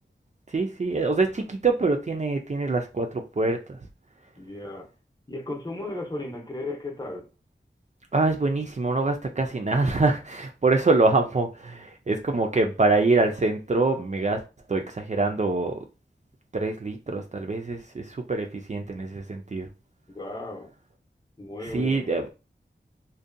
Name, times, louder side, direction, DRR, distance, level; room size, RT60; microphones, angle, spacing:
voice 1, 0.5-3.8 8.1-14.4 14.7-15.8 16.5-19.7 21.7-22.3, right 3 dB, 35° right, 0.3 m, -25 dB
voice 2, 4.4-4.9 5.3-7.3 20.1-20.7 21.4-22.1, left 2 dB, 20° left, 0.7 m, -35 dB
2.6 x 2.2 x 2.5 m
wide cardioid pair, 45°, 20 cm